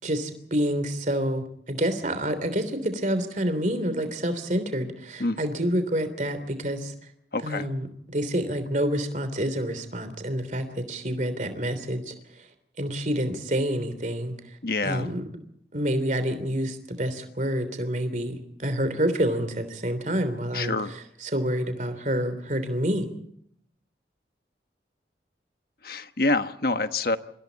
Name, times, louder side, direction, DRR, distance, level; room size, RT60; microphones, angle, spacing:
voice 1, 0.0-6.9 7.4-12.1 12.8-14.3 14.8-15.2 15.7-20.7 21.2-23.1, equal, 45° right, 10 dB, 3.3 m, -28 dB
voice 2, 7.3-7.7 14.6-15.1 20.5-20.9 25.8-27.2, left 2 dB, 55° left, 9 dB, 1.3 m, -26 dB
28.5 x 25.5 x 4.1 m, 0.69 s
head